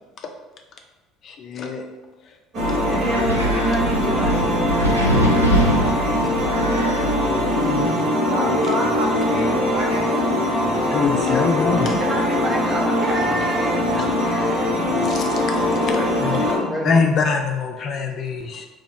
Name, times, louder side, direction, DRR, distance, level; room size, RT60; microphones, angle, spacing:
voice 1, 1.2-1.8 2.7-2.8 10.9-11.9 15.0-15.9 16.2-16.4 16.8-18.6, left 5 dB, 45° left, 4 dB, 0.4 m, -23 dB
sound 1, 2.5-16.6, left 1 dB, 50° right, 1.2 m, -21 dB
Wind, 2.6-7.8, right 1 dB, 90° right, 0.3 m, -23 dB
voice 2, 2.9-6.7 9.0-9.6 12.0-14.8, right 1 dB, 30° right, 0 dB, 0.5 m, -30 dB
voice 3, 7.6-8.2 11.9-12.2 15.9-17.1, equal, 5° left, -2 dB, 1.0 m, -30 dB
voice 4, 8.3-10.3, right 1 dB, 70° right, -5 dB, 0.9 m, -28 dB
2.9 x 2.3 x 4.0 m, 1.2 s
figure-of-eight pair, 60°, 0 cm